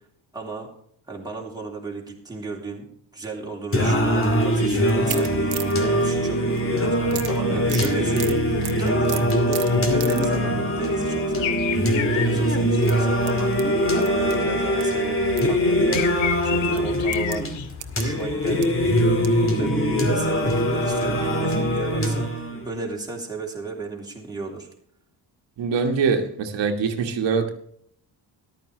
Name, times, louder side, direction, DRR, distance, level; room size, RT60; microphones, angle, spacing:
voice 1, 0.3-0.7 1.1-2.9 3.1-5.3 5.8-17.5 18.0-18.7 19.2-24.7, right 3 dB, 10° right, -2 dB, 3.1 m, -34 dB
Singing, 3.7-22.7, equal, 30° left, 2.3 m, -22 dB
sound 1, 4.9-6.7 7.1-10.4 10.8-11.1 11.9-12.1 12.7-14.8 15.1-15.5 15.9-16.0 16.8-19.4 19.9-20.0 20.3-20.4, right 11 dB, 60° right, 1.2 m, -36 dB
sound 2, 11.4-12.3 12.7-13.0 15.9-17.7, left 10 dB, 85° left, 1.2 m, -29 dB
voice 2, 25.6-27.5, right 5 dB, 75° right, 4 dB, 1.8 m, -23 dB
14.0 x 12.0 x 3.2 m, 0.64 s
cardioid pair, 135°, 44 cm